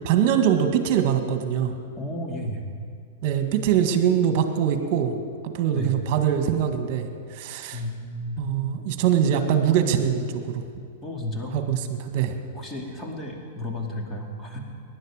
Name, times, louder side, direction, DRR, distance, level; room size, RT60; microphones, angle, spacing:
voice 1, 0.0-1.7 3.2-5.2 5.5-7.8 8.4-10.6 11.5-12.3, right 9 dB, 50° right, 6 dB, 1.7 m, -23 dB
voice 2, 2.0-2.7 5.7-5.9 7.7-8.6 11.0-11.6 12.5-14.6, left 1 dB, 15° left, 0 dB, 2.5 m, -33 dB
18.5 x 11.0 x 5.0 m, 2.3 s
hypercardioid pair, 120°, 0 cm